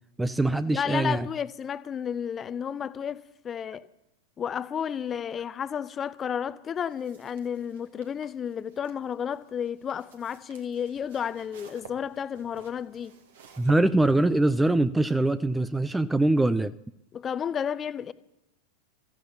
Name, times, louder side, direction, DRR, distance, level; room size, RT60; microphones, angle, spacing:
voice 1, 0.2-1.3 13.6-16.7, right 2 dB, 5° right, 0.5 m, -23 dB
voice 2, 0.7-3.9 4.4-13.1 17.1-18.1, left 8 dB, 25° left, 0.7 m, -32 dB
sound 1, 6.8-14.5, right 6 dB, 60° right, 2.2 m, -53 dB
15.0 x 13.5 x 5.7 m
figure-of-eight pair, 90°, 0 cm